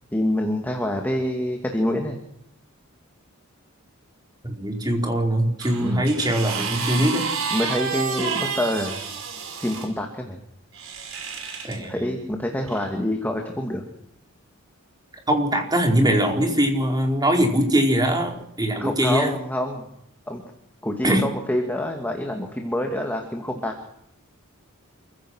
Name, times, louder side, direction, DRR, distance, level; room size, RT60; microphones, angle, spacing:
voice 1, 0.1-2.2 5.8-6.1 7.5-9.0 9.6-10.4 11.8-13.8 18.8-19.9 20.3-20.4 20.8-23.7, left 1 dB, 10° left, 2 dB, 2.5 m, -26 dB
voice 2, 4.4-7.3 11.6-12.2 15.3-19.3 21.0-21.3, right 1 dB, 20° right, 2 dB, 4.7 m, -22 dB
sound 1, 5.6-9.9 10.7-11.8 12.7-12.8, right 5 dB, 75° right, 5.6 m, -30 dB
28.0 x 16.0 x 6.4 m, 0.77 s
head